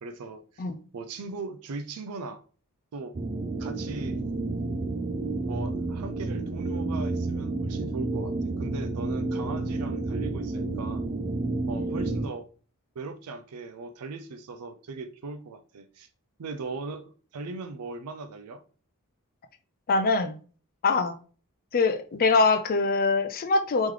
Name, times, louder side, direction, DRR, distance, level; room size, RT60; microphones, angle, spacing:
voice 1, 0.0-0.7 0.9-2.4 2.9-3.2 3.6-4.2 5.4-11.0 11.7-12.5 13.0-16.1 16.4-18.6, right 3 dB, 90° right, 0.5 m, -39 dB
sound 1, 3.1-12.3, right 2 dB, 35° right, 0.4 m, -30 dB
voice 2, 19.9-20.4 20.8-21.1 21.7-23.9, left 3 dB, 40° left, 0.4 m, -23 dB
3.1 x 3.1 x 3.7 m
head